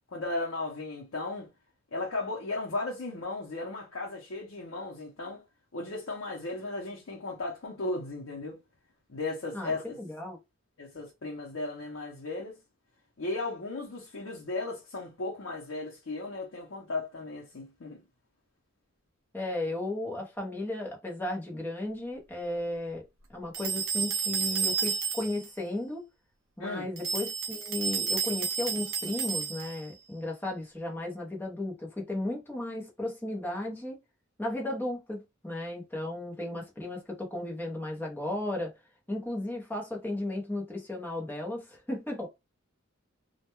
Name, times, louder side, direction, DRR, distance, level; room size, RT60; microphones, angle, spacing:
voice 1, 0.1-1.5 1.9-5.4 5.7-8.6 9.1-10.0 10.8-12.6 13.2-18.0 26.6-26.9, left 2 dB, 70° left, 0.7 m, -36 dB
voice 2, 9.5-10.4 19.3-23.0 23.3-26.1 26.6-34.0 34.4-38.7 39.1-42.3, left 1 dB, 10° left, 0.7 m, -35 dB
sound 1, 23.5-25.5 27.0-29.9, right 5 dB, 70° right, 0.6 m, -31 dB
2.2 x 2.2 x 2.9 m
head